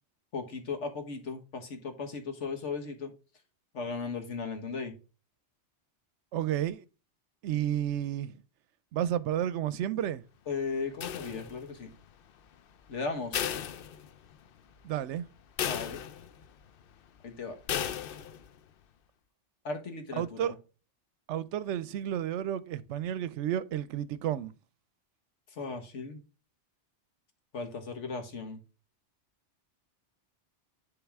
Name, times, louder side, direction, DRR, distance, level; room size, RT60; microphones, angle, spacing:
voice 1, 0.3-3.1 3.7-4.9 10.5-11.9 12.9-13.4 15.7-16.0 17.2-17.6 19.6-20.5 25.5-26.2 27.5-28.6, left 4 dB, 85° left, 1.6 m, -36 dB
voice 2, 6.3-6.8 7.4-8.4 8.9-10.2 14.8-15.2 20.2-20.5 21.3-24.5, right 11 dB, 80° right, 0.9 m, -31 dB
sound 1, 11.0-11.8 13.3-14.5 14.9-15.0 15.6-16.5 17.7-18.5, left 9 dB, 60° left, 0.7 m, -35 dB
10.5 x 3.6 x 3.5 m
omnidirectional pair, 1.2 m